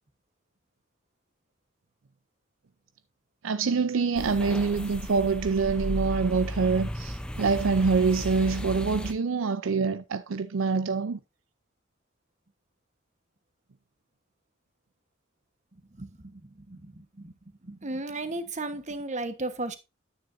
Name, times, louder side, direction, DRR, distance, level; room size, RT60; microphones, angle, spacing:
voice 1, 3.4-11.2, right 4 dB, 70° right, 0.5 m, -25 dB
sound 1, 4.2-9.1, equal, 5° left, 0.6 m, -34 dB
voice 2, 16.0-17.3 17.6-19.8, right 2 dB, 35° right, 1.2 m, -35 dB
9.7 x 9.2 x 2.6 m
head